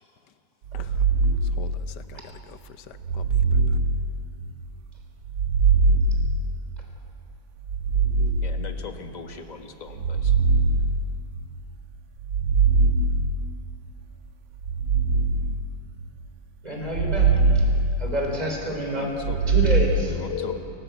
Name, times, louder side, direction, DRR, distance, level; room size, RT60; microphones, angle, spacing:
voice 1, 0.7-1.0 1.4-3.8 20.3-20.6, left 9 dB, 65° left, 11 dB, 1.4 m, -39 dB
sound 1, 0.7-2.2 3.0-4.7 5.2-7.0 7.6-9.2 9.9-11.7 12.2-13.8 14.6-16.3 16.8-18.6 19.1-20.0, right 3 dB, 90° right, 1.7 m, -22 dB
voice 2, 8.4-10.3 18.9-19.4 20.1-20.6, left 4 dB, 25° left, 5 dB, 1.1 m, -39 dB
voice 3, 16.6-17.6 18.0-19.1 19.5-20.2, equal, 20° right, 0 dB, 3.6 m, -28 dB
29.0 x 12.0 x 8.0 m, 2.6 s
omnidirectional pair, 2.1 m